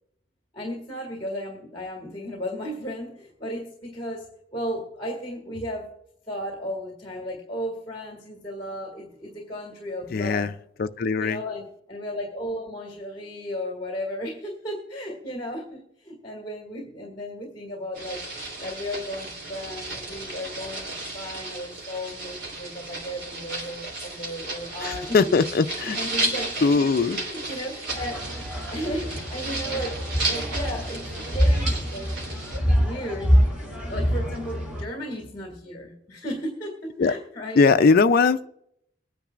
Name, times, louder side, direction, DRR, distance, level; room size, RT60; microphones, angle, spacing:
voice 1, 0.5-5.9 6.3-10.5 11.2-18.3 18.6-25.2 25.7-26.9 27.1-28.3 28.7-32.2 32.8-33.3 33.9-37.7, equal, 30° left, 2.2 m, -35 dB
voice 2, 10.1-10.5 10.8-11.4 24.8-26.0 26.6-27.2 37.0-37.1 37.6-38.5, left 4 dB, 50° left, 0.4 m, -20 dB
sound 1, 17.9-32.6, right 2 dB, 70° right, 3.4 m, -34 dB
sound 2, 27.9-34.8, equal, 5° right, 6.0 m, -25 dB
23.5 x 10.0 x 2.5 m
head